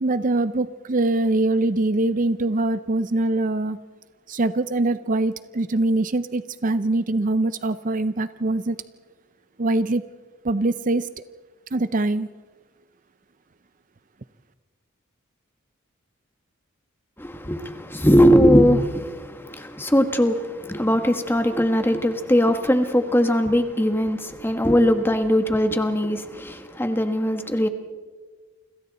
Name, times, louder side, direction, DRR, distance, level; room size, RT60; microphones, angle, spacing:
voice 1, 0.0-3.8 4.3-8.8 9.6-10.0 10.4-11.1 11.7-12.3, right 2 dB, 40° right, 0.5 m, -23 dB
voice 2, 17.2-27.7, equal, 10° left, 1.5 m, -20 dB
29.0 x 26.0 x 4.2 m
head